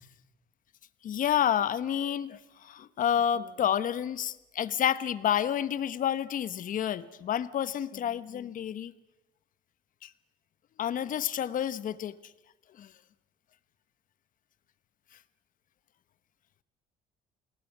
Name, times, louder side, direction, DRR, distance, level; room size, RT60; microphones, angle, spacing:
voice 1, 1.0-8.9 10.0-10.1 10.8-12.1 12.8-12.9, left 9 dB, 50° left, 14 dB, 1.2 m, -29 dB
28.5 x 19.0 x 7.4 m, 0.97 s
cardioid pair, 110°, 17 cm